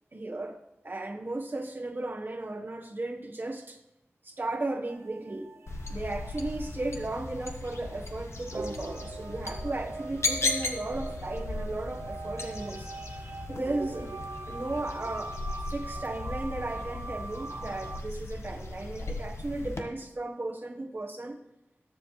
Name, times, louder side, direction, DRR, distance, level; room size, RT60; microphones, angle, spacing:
voice 1, 0.1-0.6 0.8-3.8 4.2-5.5 5.9-14.1 14.5-21.3, right 2 dB, 45° right, 2 dB, 1.3 m, -35 dB
sound 1, 4.9-18.0, right 3 dB, 85° right, 0.6 m, -42 dB
sound 2, 5.7-19.8, left 2 dB, 80° left, 1.2 m, -37 dB
20.5 x 7.5 x 3.2 m, 0.87 s
wide cardioid pair, 70°, 5 cm